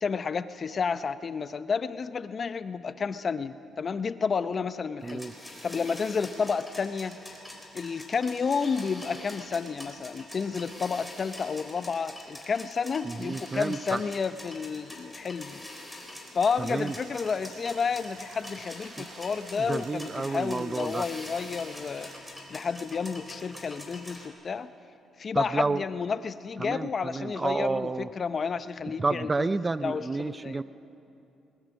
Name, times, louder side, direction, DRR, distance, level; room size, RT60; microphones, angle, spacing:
voice 1, 0.0-5.2 5.6-7.2 7.7-15.7 16.3-22.1 22.5-24.7 25.2-29.5 29.8-30.6, left 5 dB, 40° left, 13 dB, 0.7 m, -31 dB
sound 1, 5.0-24.3, left 1 dB, 5° left, 3.8 m, -44 dB
voice 2, 5.0-5.3 13.0-14.0 16.6-16.9 19.0-19.1 19.6-21.1 25.3-25.8 26.6-28.1 29.0-30.6, right 3 dB, 25° right, 14 dB, 0.5 m, -30 dB
sound 2, 16.5-22.2, right 8 dB, 75° right, 1.0 m, -53 dB
20.5 x 20.0 x 6.4 m, 2.8 s
cardioid pair, 90°, 0 cm